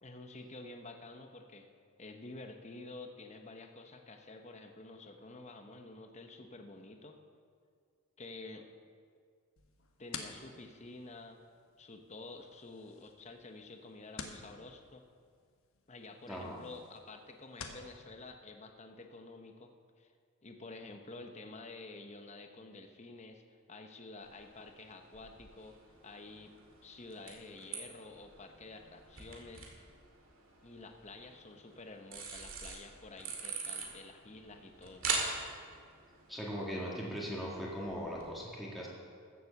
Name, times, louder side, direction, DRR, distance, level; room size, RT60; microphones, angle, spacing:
voice 1, 0.0-1.7 2.0-7.2 8.2-8.7 10.0-11.4 11.8-15.0 15.9-19.7 20.0-20.1 20.4-23.4 23.7-25.8 26.0-26.5 26.8-29.7 30.6-35.1, left 2 dB, 30° left, 5 dB, 0.8 m, -50 dB
sound 1, 9.6-17.9, left 5 dB, 65° left, 1.2 m, -51 dB
voice 2, 16.3-16.6 36.3-38.9, equal, ahead, -5 dB, 1.8 m, -39 dB
sound 2, 24.2-38.3, right 4 dB, 65° right, 2.3 m, -44 dB
14.5 x 7.6 x 7.0 m, 2.1 s
head